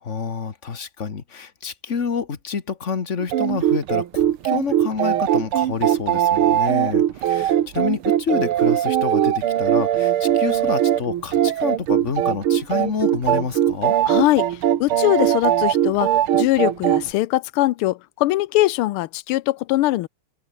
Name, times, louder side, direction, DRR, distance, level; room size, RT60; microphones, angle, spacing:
voice 1, 0.0-13.9, left 6 dB, 35° left, 1.8 m, -28 dB
sound 1, 3.2-17.1, right 11 dB, 85° right, 2.0 m, -20 dB
voice 2, 14.1-14.5 14.8-20.1, left 17 dB, 90° left, 1.6 m, -21 dB
open air
omnidirectional pair, 2.3 m